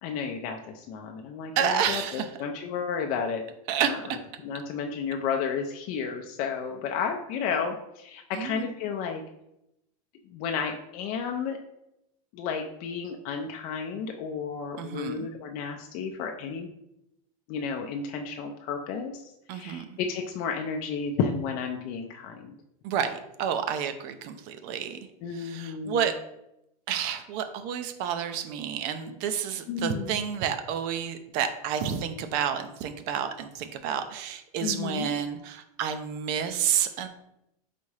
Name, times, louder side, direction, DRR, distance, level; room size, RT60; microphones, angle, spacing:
voice 1, 0.0-3.4 3.8-4.0 4.4-9.2 10.3-11.6 12.3-16.7 17.5-19.2 19.5-22.5 25.2-26.1 29.7-30.2 34.6-35.1, left 6 dB, 50° left, 3 dB, 0.5 m, -32 dB
voice 2, 1.6-2.3 3.7-4.2 8.3-8.7 14.8-15.3 19.5-20.0 22.8-25.0 25.3-26.1 26.9-37.1, right 8 dB, 55° right, 8 dB, 0.5 m, -30 dB
4.1 x 3.5 x 3.2 m, 0.83 s
supercardioid pair, 125°, 19 cm